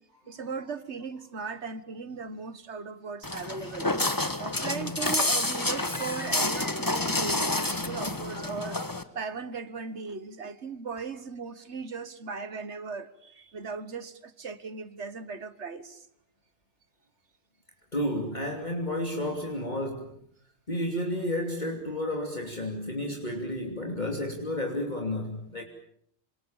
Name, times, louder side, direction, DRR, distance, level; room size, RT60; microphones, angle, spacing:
voice 1, 0.3-3.9 4.4-8.8 9.2-16.1, right 5 dB, 60° right, 13 dB, 1.8 m, -37 dB
Walk footsteps, 3.2-9.0, left 2 dB, 15° left, 1.4 m, -29 dB
voice 2, 17.9-20.2 20.7-25.6, left 1 dB, 35° left, 1 dB, 3.1 m, -31 dB
28.0 x 26.0 x 7.3 m, 0.66 s
omnidirectional pair, 1.4 m